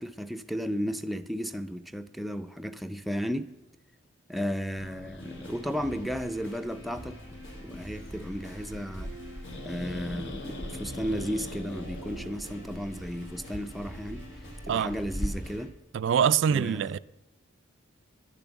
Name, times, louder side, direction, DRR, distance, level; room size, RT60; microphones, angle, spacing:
voice 1, 0.0-3.5 4.3-7.2 7.6-9.1 9.6-14.2 14.6-15.7 16.5-16.9, equal, ahead, 0.4 m, -34 dB
Growling, 4.8-15.3, left 1 dB, 65° left, 1.7 m, -41 dB
sound 1, 5.2-15.6, right 1 dB, 85° left, 6.3 m, -45 dB
voice 2, 15.9-17.0, right 8 dB, 65° right, 0.3 m, -24 dB
11.0 x 10.5 x 7.0 m
head